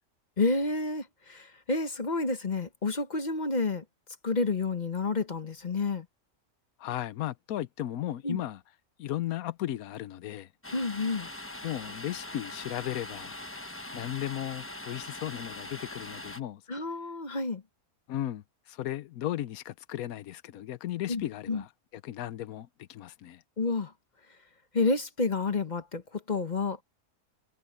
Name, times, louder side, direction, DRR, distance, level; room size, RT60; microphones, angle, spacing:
voice 1, 0.4-3.8 4.2-6.1 8.2-8.4 10.7-11.3 16.7-17.6 21.1-21.2 21.5-21.6 23.6-23.9 24.7-26.8, left 3 dB, 35° left, 1.0 m, -29 dB
voice 2, 6.8-8.6 9.0-10.5 11.6-13.3 13.9-16.6 18.1-23.4, left 13 dB, 85° left, 1.2 m, -35 dB
Domestic sounds home sounds, 10.6-16.4, left 1 dB, 10° left, 1.0 m, -42 dB
omnidirectional pair, 1.5 m